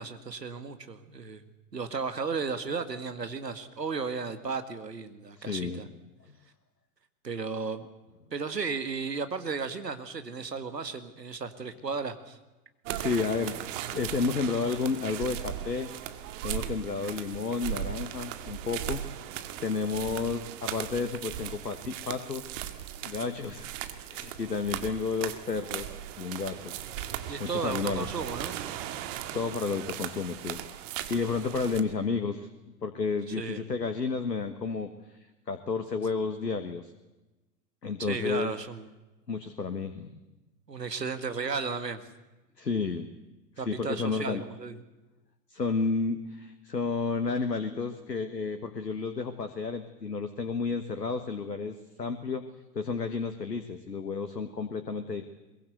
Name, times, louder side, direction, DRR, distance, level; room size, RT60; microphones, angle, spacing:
voice 1, 0.0-1.4 1.7-5.9 7.2-7.9 8.3-12.4 27.3-28.6 33.3-33.6 38.0-38.8 40.7-42.0 43.6-44.8, right 4 dB, 85° right, 9 dB, 2.0 m, -34 dB
voice 2, 5.4-5.8 12.9-13.6 13.9-15.9 16.4-19.0 19.6-22.5 23.0-23.7 24.1-26.7 27.4-28.1 29.3-30.6 31.1-32.5 32.8-34.9 35.5-36.9 37.8-38.5 39.3-40.2 42.6-43.1 43.6-44.4 45.5-52.4 52.7-55.2, left 4 dB, 90° left, 9 dB, 1.6 m, -31 dB
sound 1, 12.9-31.8, right 11 dB, 50° right, 2.1 m, -38 dB
22.5 x 22.5 x 8.0 m, 1.1 s
figure-of-eight pair, 95°, 48 cm